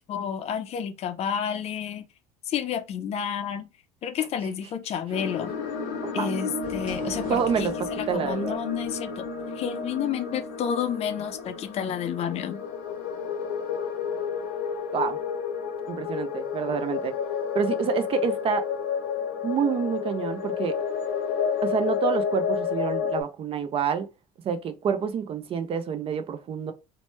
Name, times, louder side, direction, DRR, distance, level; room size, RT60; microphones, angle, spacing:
voice 1, 0.0-2.1 2.5-3.7 4.0-5.5 6.1-9.2 9.6-12.6, left 8 dB, 50° left, 0.5 m, -30 dB
sound 1, 5.1-23.2, left 6 dB, 85° left, 0.8 m, -31 dB
sound 2, 6.6-11.8, right 2 dB, 75° right, 1.0 m, -44 dB
voice 2, 7.3-7.7 8.1-8.5 14.9-15.2 15.9-17.1 17.5-18.7 19.4-20.8 21.6-24.1 24.4-26.7, right 7 dB, 40° right, 0.5 m, -27 dB
2.9 x 2.1 x 3.1 m
supercardioid pair, 100°, 14 cm